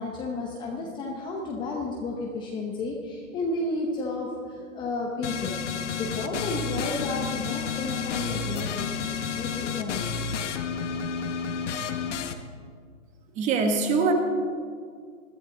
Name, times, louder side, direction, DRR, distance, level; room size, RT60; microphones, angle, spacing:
voice 1, 0.0-5.6 6.0-10.5, left 2 dB, 10° left, -1 dB, 0.8 m, -32 dB
sound 1, 5.2-12.3, left 6 dB, 60° left, 1.4 m, -31 dB
voice 2, 13.3-14.1, right 4 dB, 15° right, 5 dB, 1.2 m, -23 dB
20.5 x 13.5 x 3.8 m, 2.1 s
hypercardioid pair, 145°, 41 cm